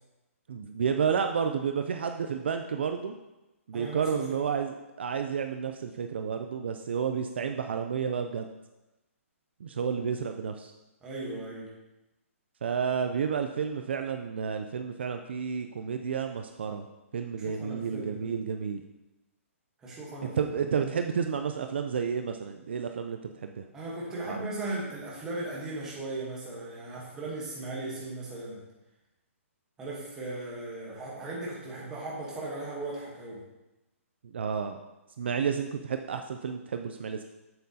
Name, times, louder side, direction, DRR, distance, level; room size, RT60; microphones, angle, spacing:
voice 1, 0.5-3.2 3.7-8.5 9.6-10.7 12.6-16.9 17.1-18.8 20.2-23.7 24.2-24.4 34.3-34.8 35.2-37.2, right 6 dB, 50° right, 6 dB, 0.4 m, -31 dB
voice 2, 3.7-4.4 11.0-11.7 17.4-18.3 19.8-20.5 23.7-28.6 29.8-33.4, right 2 dB, 5° right, -5 dB, 1.1 m, -37 dB
7.7 x 7.5 x 2.8 m, 1.0 s
hypercardioid pair, 180°, 8 cm